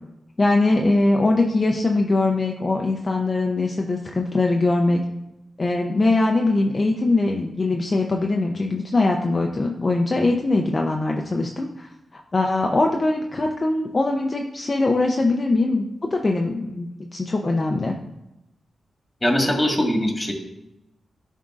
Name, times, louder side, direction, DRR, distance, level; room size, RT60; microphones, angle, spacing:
voice 1, 0.4-5.0 5.6-15.9 16.1-17.9, left 2 dB, 40° left, 1 dB, 0.5 m, -22 dB
voice 2, 19.2-20.3, left 1 dB, 15° left, 1 dB, 1.7 m, -21 dB
10.5 x 3.6 x 2.5 m, 0.92 s
cardioid pair, 50°, 0 cm